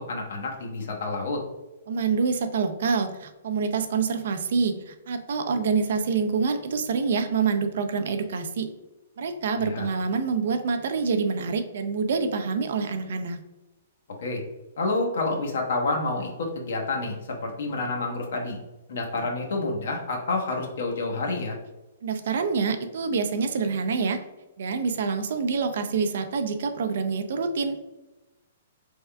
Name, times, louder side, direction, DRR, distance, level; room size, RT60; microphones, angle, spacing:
voice 1, 0.0-1.4 9.6-9.9 14.2-14.4 14.8-18.6 18.9-21.6, left 2 dB, 55° left, 0 dB, 0.9 m, -29 dB
voice 2, 1.9-8.7 9.2-13.4 22.0-24.2 24.6-27.8, right 5 dB, 50° right, 7 dB, 0.4 m, -26 dB
4.4 x 3.5 x 2.2 m, 1.1 s
hypercardioid pair, 175°, 0 cm